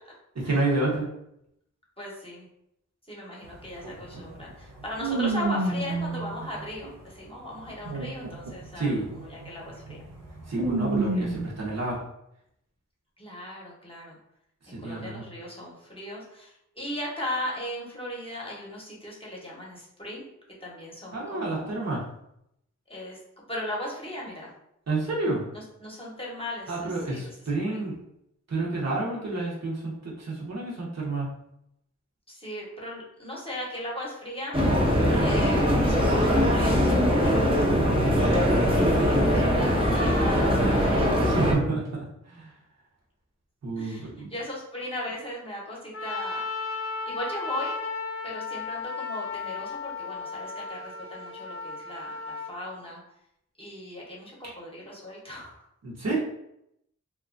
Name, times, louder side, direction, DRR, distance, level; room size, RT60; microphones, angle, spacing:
voice 1, 0.3-1.1 8.7-9.1 10.5-12.0 14.6-15.2 21.1-22.0 24.9-25.4 26.7-28.0 28.5-31.3 38.9-39.7 41.2-42.5 43.6-44.3 55.8-56.2, right 2 dB, 55° right, -4 dB, 0.8 m, -29 dB
voice 2, 2.0-2.5 3.1-10.0 11.1-11.3 13.2-14.2 14.7-20.3 20.6-21.7 22.9-23.2 23.5-24.5 25.5-27.3 27.7-27.8 32.3-34.6 35.2-37.6 39.0-41.1 43.8-46.4 47.0-47.8 48.2-53.0 53.6-55.6, left 1 dB, 15° left, -5 dB, 0.8 m, -38 dB
sound 1, 3.5-3.6 3.8-7.1 7.6-11.7, right 3 dB, 90° right, 0.6 m, -30 dB
sound 2, 34.5-41.5, equal, 15° right, 0.6 m, -22 dB
Trumpet, 45.9-52.5, left 4 dB, 45° left, 0.4 m, -35 dB
2.8 x 2.3 x 2.5 m, 0.78 s
wide cardioid pair, 70°, 31 cm